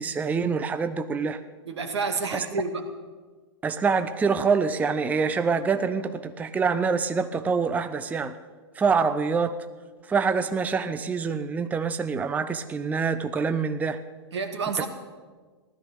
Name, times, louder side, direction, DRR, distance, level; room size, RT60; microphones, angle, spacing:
voice 1, 0.0-1.4 2.3-2.5 3.6-8.3 8.8-9.6 10.1-14.0 14.8-14.9, right 5 dB, 10° right, 10 dB, 0.6 m, -25 dB
voice 2, 1.7-2.8 14.3-14.9, right 4 dB, 80° right, 5 dB, 2.3 m, -29 dB
16.0 x 12.5 x 6.9 m, 1.4 s
hypercardioid pair, 115°, 14 cm